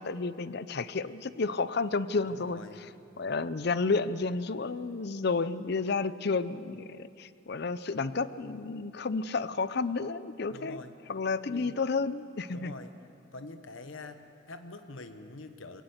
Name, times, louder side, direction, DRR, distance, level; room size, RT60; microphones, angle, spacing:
voice 1, 0.0-2.6 3.2-10.8 11.1-12.7, left 4 dB, 50° left, 15 dB, 0.6 m, -31 dB
voice 2, 2.3-2.8 10.5-10.9 11.5-11.8 12.5-13.0 13.3-15.8, left 3 dB, 75° left, 9 dB, 1.1 m, -45 dB
21.5 x 18.0 x 8.0 m, 2.7 s
head